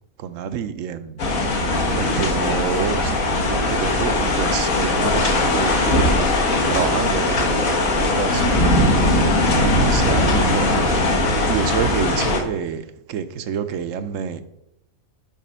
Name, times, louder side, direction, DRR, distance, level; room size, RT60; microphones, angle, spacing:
voice 1, 0.2-1.2 1.9-9.0 9.6-11.0 11.5-14.4, right 7 dB, 70° right, 1.0 m, -28 dB
sound 1, 1.2-12.4, left 2 dB, 75° left, 1.8 m, -19 dB
7.4 x 4.9 x 5.4 m
omnidirectional pair, 1.5 m